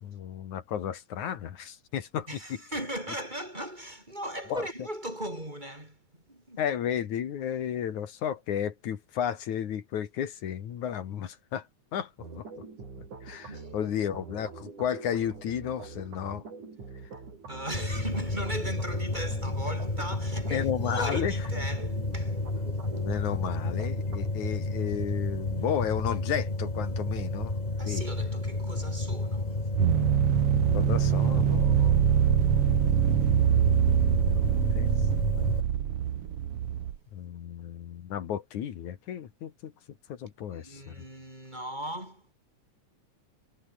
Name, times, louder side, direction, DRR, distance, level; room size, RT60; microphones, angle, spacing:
voice 1, 0.0-2.3 4.5-4.7 6.6-11.7 11.9-12.1 12.4-12.6 13.2-16.4 20.5-21.4 23.0-27.6 27.9-28.1 30.7-32.4 33.4-34.9 35.4-35.5 37.1-39.7 40.1-40.9, left 9 dB, 75° left, 3.2 m, -33 dB
voice 2, 2.3-6.0 6.3-6.6 13.5-13.7 17.5-22.4 27.8-29.8 40.5-42.3, right 1 dB, 15° right, 5.8 m, -38 dB
sound 1, 12.2-24.3, right 4 dB, 80° right, 7.4 m, -44 dB
sound 2, 17.7-35.6, left 2 dB, 15° left, 2.4 m, -31 dB
sound 3, 29.7-37.0, right 10 dB, 55° right, 2.1 m, -24 dB
omnidirectional pair, 3.4 m